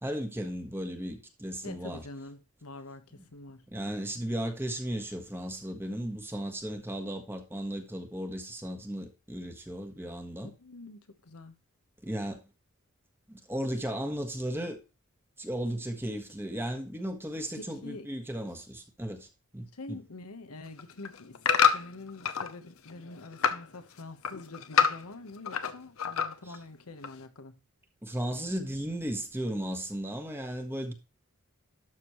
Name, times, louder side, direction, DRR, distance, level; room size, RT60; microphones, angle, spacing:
voice 1, 0.0-2.0 3.7-10.5 12.0-12.4 13.3-14.8 15.4-19.3 19.5-20.0 26.4-26.6 28.0-30.9, right 1 dB, 10° right, 1.4 m, -35 dB
voice 2, 1.6-3.6 10.6-11.6 17.5-18.1 19.7-21.4 21.7-27.6, left 2 dB, 90° left, 1.2 m, -45 dB
sound 1, 20.7-22.5 22.9-23.7 24.0-25.7 26.0-26.6 27.0-27.1, left 7 dB, 70° left, 0.8 m, -27 dB
12.0 x 6.5 x 3.1 m
head